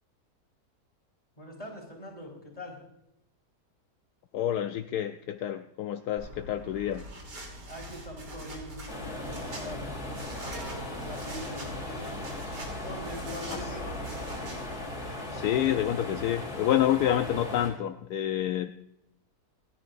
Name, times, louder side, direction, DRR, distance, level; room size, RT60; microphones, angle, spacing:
voice 1, 1.4-2.8 7.6-10.0 10.5-12.1 12.8-13.9, equal, 20° left, -1 dB, 4.0 m, -43 dB
voice 2, 4.3-7.1 13.5-13.8 15.3-18.7, left 11 dB, 75° left, 8 dB, 1.1 m, -28 dB
sound 1, 6.2-14.8, right 1 dB, 85° right, 3.6 m, -43 dB
sound 2, 8.9-17.7, left 1 dB, 40° left, 3.7 m, -38 dB
sound 3, 10.5-12.3, right 3 dB, 60° right, 2.3 m, -48 dB
27.0 x 10.5 x 2.5 m, 0.83 s
omnidirectional pair, 1.8 m